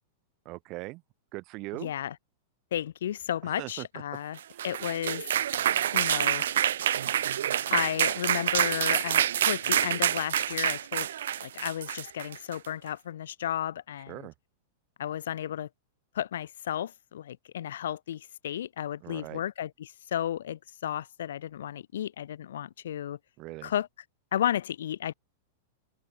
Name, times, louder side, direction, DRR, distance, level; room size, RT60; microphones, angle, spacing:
voice 1, 0.4-1.0 1.3-1.9 3.4-3.9 4.5-4.6 14.1-14.3 19.0-19.4 23.4-23.7, right 22 dB, 30° right, 3.0 m, -40 dB
voice 2, 1.8-2.1 2.7-4.4 4.6-5.2 5.9-6.4 7.7-11.1 11.4-14.3 15.0-15.7 16.1-23.2 23.6-23.9 24.3-25.1, left 10 dB, 85° left, 0.8 m, -33 dB
sound 1, 4.4-12.7, right 10 dB, 90° right, 1.8 m, -27 dB
open air
supercardioid pair, 175°, 0 cm